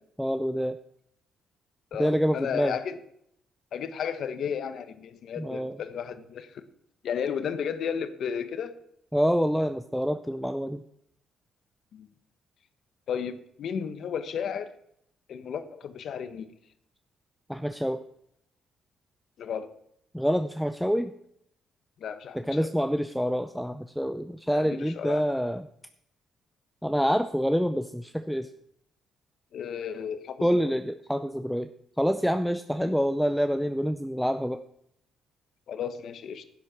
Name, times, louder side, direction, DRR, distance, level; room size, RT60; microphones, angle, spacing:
voice 1, 0.2-0.8 2.0-2.7 5.4-5.8 9.1-10.8 17.5-18.0 20.1-21.1 22.3-25.7 26.8-28.5 30.4-31.7 32.0-34.6, equal, ahead, 8 dB, 0.6 m, -27 dB
voice 2, 1.9-3.0 3.7-6.6 7.0-8.8 11.9-12.1 13.1-14.7 15.3-16.5 19.4-19.7 22.0-22.7 24.5-25.2 29.5-30.8 32.8-32.9 35.7-36.4, left 7 dB, 65° left, 10 dB, 1.2 m, -33 dB
11.5 x 9.7 x 6.0 m, 0.72 s
cardioid pair, 90°, 0 cm